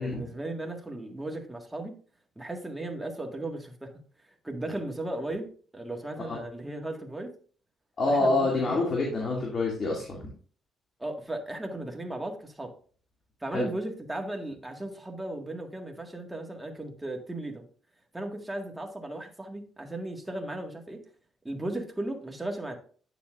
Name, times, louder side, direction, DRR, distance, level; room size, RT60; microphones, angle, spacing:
voice 1, 0.0-1.9 2.3-3.9 4.4-7.3 8.1-8.8 11.0-12.7 13.4-17.6 18.1-21.0 21.4-22.8, right 1 dB, 10° right, 2 dB, 1.7 m, -36 dB
voice 2, 8.0-10.3 13.5-13.7, left 2 dB, 45° left, -2 dB, 2.4 m, -27 dB
9.1 x 7.2 x 2.5 m, 0.43 s
cardioid pair, 90°, 0 cm